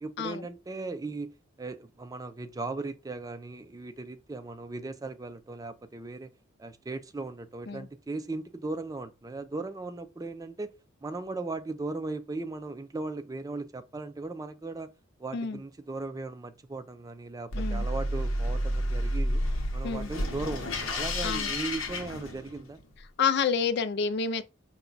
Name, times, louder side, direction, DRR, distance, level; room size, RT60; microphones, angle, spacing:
voice 1, 0.0-6.3 6.6-10.7 11.0-14.9 15.2-19.4 19.7-22.8, right 3 dB, 15° right, 0.4 m, -37 dB
sound 1, 17.5-22.8, equal, 80° left, 0.9 m, -30 dB
voice 2, 17.5-17.9 19.8-20.1 21.2-21.5 23.2-24.4, left 6 dB, 55° left, 0.4 m, -29 dB
5.6 x 2.2 x 3.9 m
head